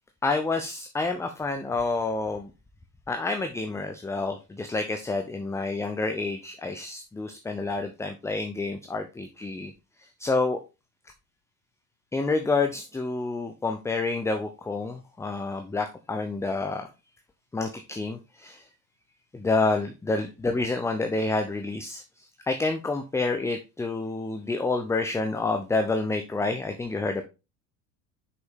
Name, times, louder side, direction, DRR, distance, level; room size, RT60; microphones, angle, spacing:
voice 1, 0.2-2.5 3.1-9.7 10.0-10.6 12.1-16.9 17.5-18.7 19.3-27.2, left 3 dB, 5° left, 6 dB, 0.5 m, -28 dB
6.2 x 5.1 x 3.5 m, 0.28 s
figure-of-eight pair, 70°, 47 cm